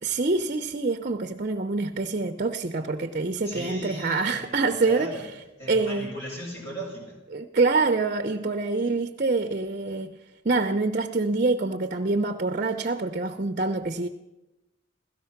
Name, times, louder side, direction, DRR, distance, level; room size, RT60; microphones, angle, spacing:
voice 1, 0.0-5.2 5.7-6.1 7.3-10.2 10.4-14.1, right 3 dB, 40° right, 7 dB, 0.7 m, -26 dB
voice 2, 3.4-5.3 5.6-7.2 8.4-8.5, right 1 dB, 60° left, -2 dB, 5.9 m, -37 dB
16.5 x 14.0 x 5.8 m, 0.98 s
head